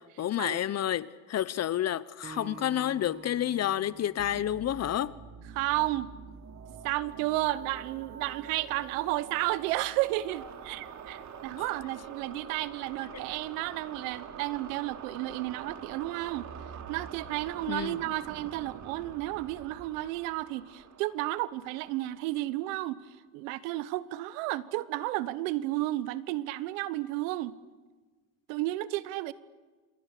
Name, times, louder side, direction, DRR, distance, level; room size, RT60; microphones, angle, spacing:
voice 1, 0.0-5.1 11.6-11.7 17.7-18.0, left 11 dB, 40° left, 0.8 m, -30 dB
Acoustic guitar, 2.2-5.5, right 5 dB, 25° right, 1.6 m, -49 dB
sound 1, 4.2-22.7, right 7 dB, 45° right, 2.7 m, -46 dB
voice 2, 5.5-6.1 6.8-16.5 16.9-23.0 23.3-27.5 28.5-29.3, right 17 dB, 85° right, 1.2 m, -32 dB
28.5 x 27.0 x 6.7 m
supercardioid pair, 100°, 39 cm